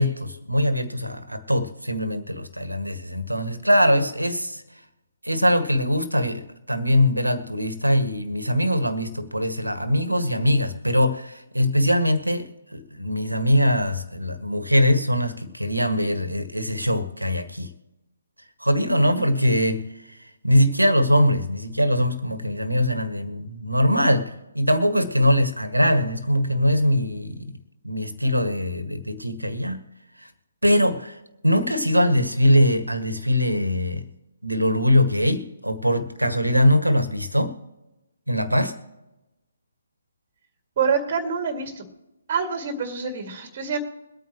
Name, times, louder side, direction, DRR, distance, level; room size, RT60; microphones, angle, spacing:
voice 1, 0.0-4.6 5.2-17.7 18.6-27.5 27.8-29.8 30.2-30.3 30.6-34.1 34.4-37.6 38.3-38.7, equal, 85° right, 10 dB, 1.7 m, -22 dB
voice 2, 40.8-41.9 42.3-43.8, right 6 dB, 30° right, 4 dB, 2.2 m, -26 dB
23.0 x 9.3 x 3.1 m, 0.99 s
figure-of-eight pair, 140°, 0 cm